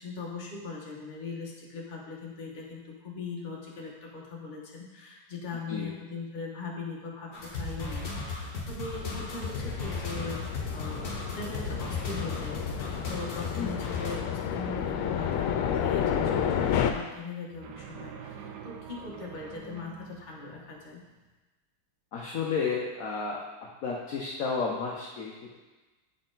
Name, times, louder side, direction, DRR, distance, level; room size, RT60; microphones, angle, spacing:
voice 1, 0.0-10.4 10.7-21.0, left 4 dB, 35° left, -2 dB, 0.8 m, -40 dB
sound 1, 7.3-14.2, left 3 dB, 50° left, 1.4 m, -36 dB
sound 2, 8.9-16.9, left 8 dB, 85° left, 1.4 m, -31 dB
sound 3, 16.1-21.2, right 8 dB, 75° right, 1.0 m, -46 dB
voice 2, 22.1-23.4 23.8-25.6, left 5 dB, 70° left, -2 dB, 0.8 m, -32 dB
8.1 x 4.3 x 3.9 m, 1.2 s
omnidirectional pair, 2.3 m